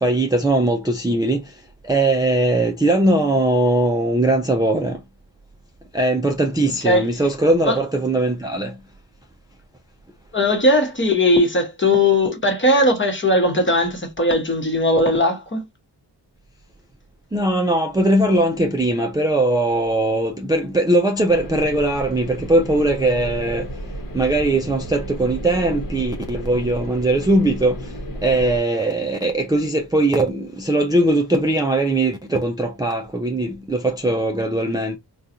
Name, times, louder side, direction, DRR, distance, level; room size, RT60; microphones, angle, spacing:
voice 1, 0.0-5.0 5.9-8.8 17.3-23.7 24.1-28.0 28.2-35.0, right 1 dB, 10° right, 0.4 m, -20 dB
voice 2, 10.3-15.6, left 1 dB, 25° left, 1.0 m, -18 dB
sound 1, 21.3-28.6, equal, 50° left, 1.0 m, -33 dB
3.8 x 2.3 x 2.7 m
wide cardioid pair, 120°, 42 cm